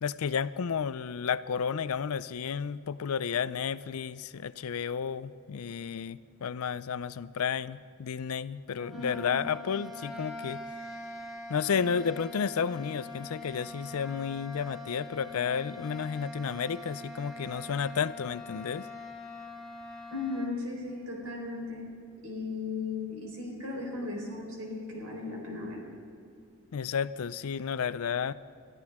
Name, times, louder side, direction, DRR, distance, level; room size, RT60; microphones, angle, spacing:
voice 1, 0.0-10.6 11.5-18.9 26.7-28.3, left 6 dB, 80° left, 16 dB, 0.5 m, -32 dB
sound 1, 8.7-20.6, left 2 dB, ahead, 1.5 m, -43 dB
voice 2, 8.9-9.4 20.1-21.8 22.2-25.8, left 3 dB, 75° right, -1 dB, 4.2 m, -36 dB
22.0 x 13.5 x 3.6 m, 2.5 s
head